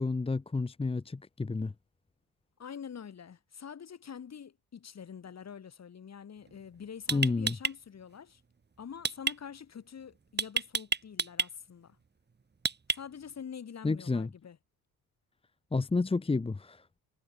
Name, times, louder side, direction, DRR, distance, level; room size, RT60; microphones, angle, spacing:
voice 1, 0.0-1.7 7.1-7.6 13.8-14.3 15.7-16.9, left 3 dB, 15° left, 1.0 m, -30 dB
voice 2, 2.6-8.4 8.8-12.0 12.9-14.6, left 7 dB, 45° left, 5.8 m, -45 dB
sound 1, 6.5-6.6 7.1-7.7 9.0-9.3 10.4-11.5 12.6-13.2, right 5 dB, 30° right, 2.7 m, -29 dB
cardioid pair, 125°, 36 cm